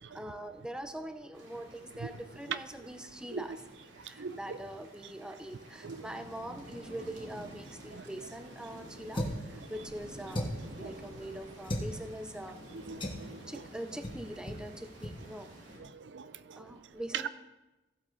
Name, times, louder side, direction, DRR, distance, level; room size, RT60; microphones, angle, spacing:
voice 1, 0.1-3.6 4.0-12.6 13.5-15.5 16.5-17.3, right 1 dB, 5° right, 8 dB, 0.6 m, -43 dB
sound 1, 1.3-15.8, right 1 dB, 90° right, 2.9 m, -50 dB
voice 2, 4.2-4.6 5.8-6.1 7.9-8.0 10.7-10.9 12.7-13.4 15.8-16.6 17.1-17.3, right 6 dB, 70° right, 14 dB, 0.5 m, -40 dB
sound 2, 9.1-9.5 10.3-10.7 11.6-11.9 13.0-13.3 14.0-14.2 14.5-14.6 15.0-15.2, left 1 dB, 30° left, 1.3 m, -35 dB
15.0 x 8.0 x 3.9 m, 1.1 s
head